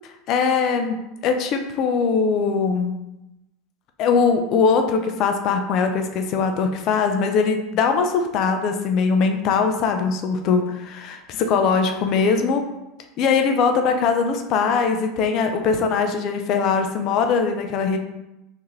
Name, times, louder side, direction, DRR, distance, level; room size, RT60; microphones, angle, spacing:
voice 1, 0.3-2.9 4.0-12.7 13.2-18.0, left 5 dB, 55° left, 5 dB, 0.5 m, -21 dB
3.5 x 2.8 x 3.2 m, 0.92 s
hypercardioid pair, 95°, 0 cm